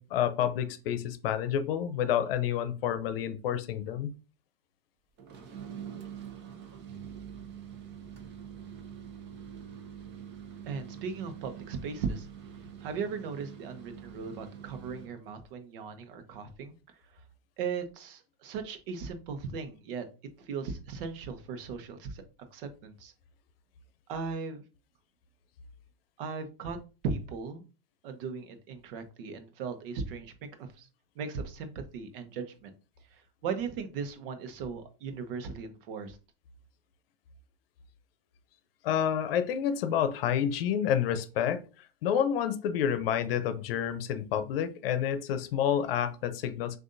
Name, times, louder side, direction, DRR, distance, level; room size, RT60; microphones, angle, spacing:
voice 1, 0.0-4.1 38.8-41.6 42.0-46.8, left 9 dB, 70° left, 11 dB, 0.7 m, -29 dB
sound 1, 5.2-15.2, right 8 dB, 35° right, 0.9 m, -45 dB
voice 2, 10.6-12.3 12.8-16.7 17.6-20.1 20.4-22.2 22.5-23.1 24.1-24.6 26.2-26.8 27.0-27.6 28.0-30.3 30.6-30.9 31.2-32.7 33.1-36.2, right 5 dB, 65° right, 8 dB, 1.0 m, -37 dB
6.2 x 2.6 x 2.6 m, 0.32 s
hypercardioid pair, 115°, 30 cm